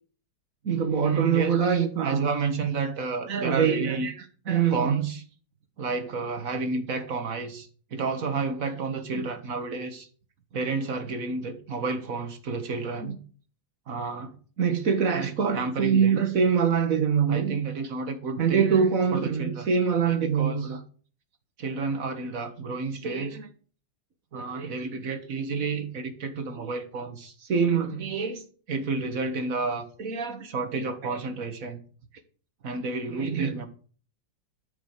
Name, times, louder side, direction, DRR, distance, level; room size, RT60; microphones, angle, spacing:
voice 1, 0.6-5.2 5.8-10.1 10.5-13.2 13.9-20.8 21.6-23.5 24.3-28.4 28.7-31.8 32.6-33.7, right 5 dB, 50° right, 1.8 m, -27 dB
12.5 x 6.0 x 6.7 m
omnidirectional pair, 2.0 m